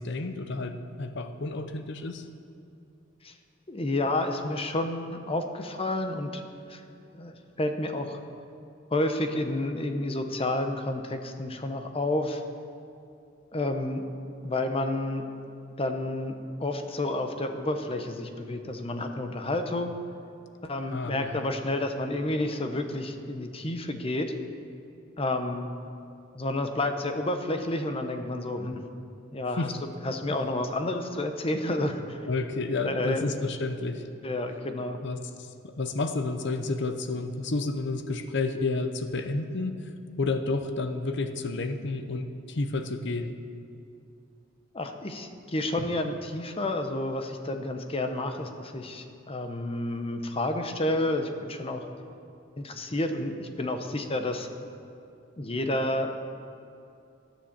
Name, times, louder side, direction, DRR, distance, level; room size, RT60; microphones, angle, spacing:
voice 1, 0.0-2.2 20.9-21.5 29.6-29.7 32.3-34.1 35.0-39.7 40.2-43.3, left 3 dB, 60° left, 8 dB, 0.8 m, -31 dB
voice 2, 3.7-6.8 7.1-8.2 8.9-12.4 13.5-14.0 14.4-15.2 15.8-19.9 20.6-24.3 25.2-25.7 26.3-28.8 29.3-29.7 30.0-32.2 32.8-33.3 34.2-35.0 44.7-51.9 52.6-54.5 55.4-56.1, left 1 dB, 30° left, 6 dB, 0.8 m, -30 dB
11.0 x 7.2 x 7.4 m, 2.6 s
head